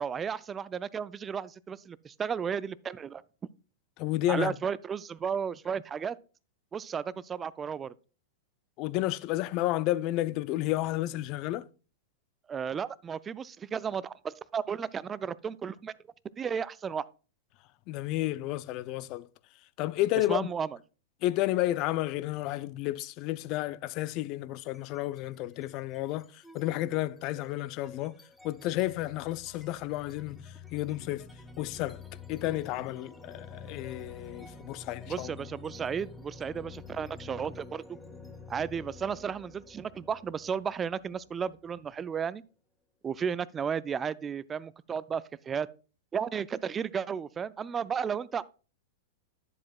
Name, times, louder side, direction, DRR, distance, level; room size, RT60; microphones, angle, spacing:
voice 1, 0.0-3.2 4.3-6.2 6.7-7.9 12.5-15.9 16.4-17.0 20.3-20.7 35.1-38.0 38.5-42.4 43.0-45.7 46.1-48.4, right 7 dB, 20° right, 0.4 m, -33 dB
voice 2, 4.0-4.5 8.8-11.7 17.9-19.3 19.8-20.5 21.2-28.2 28.4-31.3 31.6-32.0 32.3-35.3, left 16 dB, 45° left, 0.4 m, -31 dB
sound 1, 24.6-25.2 25.5-42.1, left 4 dB, 5° left, 1.0 m, -49 dB
10.5 x 7.5 x 2.3 m
hypercardioid pair, 105°, 0 cm